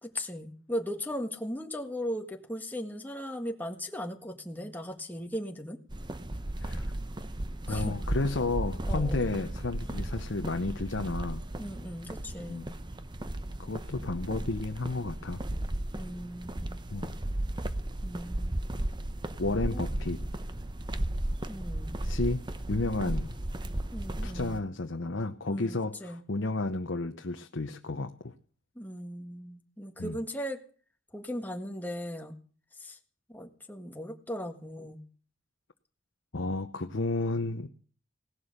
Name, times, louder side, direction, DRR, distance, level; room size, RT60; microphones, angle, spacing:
voice 1, 0.0-5.8 7.7-8.0 8.9-9.3 11.6-12.7 15.9-16.8 18.0-18.6 19.7-19.8 21.5-22.0 23.9-24.6 25.5-26.2 28.7-30.6 31.1-32.3 32.8-33.0 33.3-35.0, equal, 10° left, 4 dB, 1.7 m, -38 dB
sound 1, 5.9-24.6, right 1 dB, 25° right, 0.8 m, -35 dB
voice 2, 7.7-11.4 12.4-12.7 13.6-15.4 16.9-17.1 19.4-20.2 22.0-23.4 24.2-28.3 30.0-30.2 36.3-37.7, left 2 dB, 75° left, 5 dB, 0.9 m, -32 dB
18.0 x 11.5 x 6.7 m, 0.43 s
head